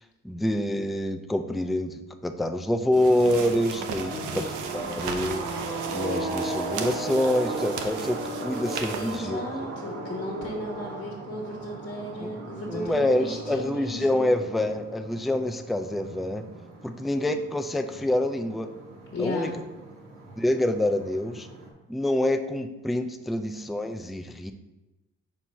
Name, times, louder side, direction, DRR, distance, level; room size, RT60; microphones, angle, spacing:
voice 1, 0.2-4.4 4.7-5.4 5.9-9.4 12.2-12.3 12.7-16.4 16.8-18.7 19.2-19.5 20.4-21.5 21.9-24.5, left 1 dB, ahead, 7 dB, 0.3 m, -26 dB
sound 1, 2.9-21.7, right 2 dB, 60° right, 1.4 m, -36 dB
sound 2, 2.9-9.2, right 6 dB, 85° right, 0.7 m, -37 dB
voice 2, 4.1-4.5 9.0-14.3 19.1-19.6, left 1 dB, 40° left, -1 dB, 1.3 m, -35 dB
4.6 x 4.3 x 5.4 m, 1.0 s
cardioid pair, 90°, 30 cm